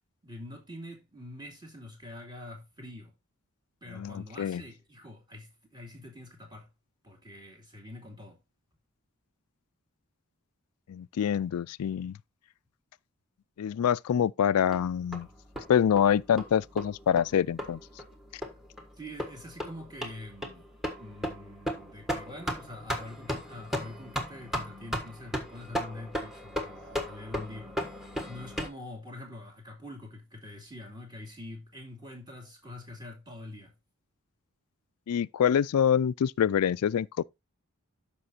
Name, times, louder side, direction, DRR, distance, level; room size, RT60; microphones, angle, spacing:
voice 1, 0.2-3.1 3.8-6.7 7.0-8.4 19.0-20.7 21.0-33.7, left 1 dB, 20° right, 2.6 m, -45 dB
voice 2, 3.9-4.6 10.9-12.2 13.6-15.3 15.7-17.8 35.1-37.2, left 8 dB, 90° left, 0.3 m, -26 dB
sound 1, 14.7-28.7, equal, ahead, 1.4 m, -36 dB
12.5 x 5.2 x 2.7 m
head